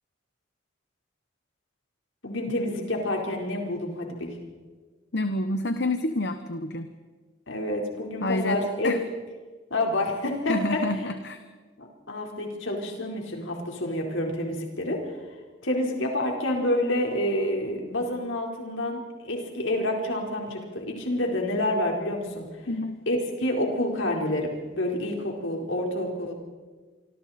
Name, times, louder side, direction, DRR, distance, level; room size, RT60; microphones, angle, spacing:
voice 1, 2.2-4.4 7.5-9.0 9.7-10.8 11.8-15.2 15.6-22.5 23.1-26.3, left 1 dB, 75° left, 0 dB, 4.3 m, -28 dB
voice 2, 5.1-6.9 8.2-9.1 10.5-11.4 22.7-23.0, left 2 dB, 55° left, 8 dB, 1.0 m, -28 dB
26.0 x 25.5 x 4.3 m, 1.4 s
head